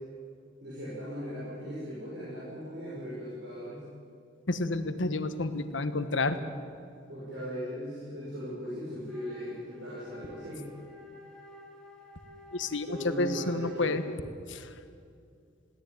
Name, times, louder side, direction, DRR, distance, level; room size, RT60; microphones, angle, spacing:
voice 1, 0.6-3.8 7.1-10.6 12.9-14.0, equal, 60° right, -8 dB, 7.3 m, -38 dB
voice 2, 4.5-6.4 12.5-14.0 14.5-14.7, left 2 dB, 75° left, 10 dB, 1.5 m, -30 dB
Wind instrument woodwind instrument, 9.0-14.2, left 1 dB, 5° left, 3.8 m, -52 dB
21.5 x 17.5 x 9.4 m, 2.3 s
head